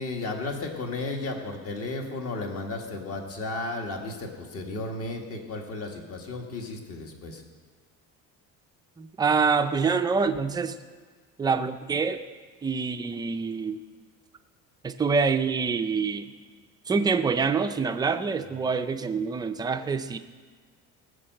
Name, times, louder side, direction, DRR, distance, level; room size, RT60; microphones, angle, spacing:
voice 1, 0.0-7.4, left 2 dB, 45° left, 2 dB, 1.8 m, -34 dB
voice 2, 9.0-10.8 11.4-12.2 12.6-13.8 14.8-16.3 16.9-20.2, right 5 dB, 15° right, 8 dB, 0.4 m, -26 dB
18.5 x 6.6 x 7.7 m, 1.5 s
cardioid pair, 170°, 33 cm